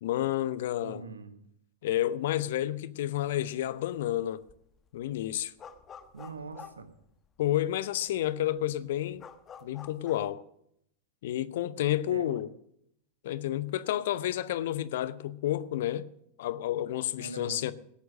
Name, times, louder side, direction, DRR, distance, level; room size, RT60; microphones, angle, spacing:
voice 1, 0.0-1.0 1.8-4.4 4.9-5.5 7.4-9.2 9.6-10.4 11.2-12.5 13.2-16.1 16.4-17.7, left 13 dB, 55° left, 0.8 m, -30 dB
voice 2, 0.8-1.5 6.1-6.9 12.1-12.4 17.1-17.7, right 4 dB, 75° right, 1.4 m, -42 dB
sound 1, 4.1-4.2 4.4-7.6 8.1-8.2 8.4-10.3, left 7 dB, 25° left, 1.2 m, -49 dB
17.5 x 9.4 x 6.3 m
figure-of-eight pair, 90°, 0 cm